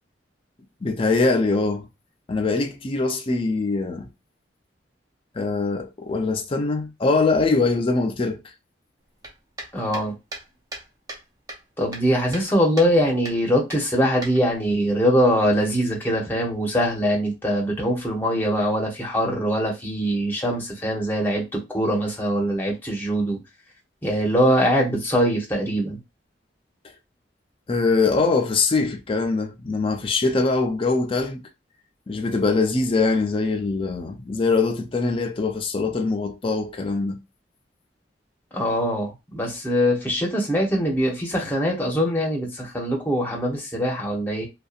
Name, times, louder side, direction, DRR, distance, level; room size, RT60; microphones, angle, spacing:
voice 1, 0.8-1.9 2.3-4.1 5.3-8.4 27.7-31.4 32.1-37.2, left 3 dB, 30° left, 0.4 m, -23 dB
sound 1, 9.2-11.2 11.5-12.5 12.8-12.9 13.2-13.4 13.7-14.7, right 1 dB, 20° right, 0.6 m, -37 dB
voice 2, 9.7-10.1 11.8-23.4 24.0-26.0 38.5-44.5, equal, 10° left, 0.8 m, -22 dB
2.7 x 2.2 x 2.4 m
head